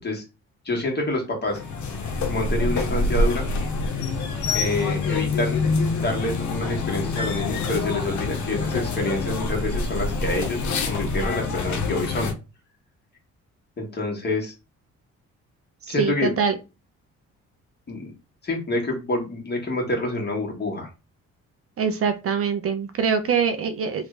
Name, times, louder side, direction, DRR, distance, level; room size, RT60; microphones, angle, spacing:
voice 1, 0.6-1.6 2.3-3.5 4.5-5.6 6.0-12.3 13.8-14.5 15.9-16.3 17.9-18.1 18.4-20.9, left 2 dB, 35° left, 1.4 m, -27 dB
sound 1, 1.5-12.3, left 3 dB, 70° left, 0.8 m, -26 dB
voice 2, 15.9-16.6 21.8-24.1, right 6 dB, 50° right, 0.5 m, -24 dB
3.1 x 2.4 x 3.2 m
cardioid pair, 90°, 30 cm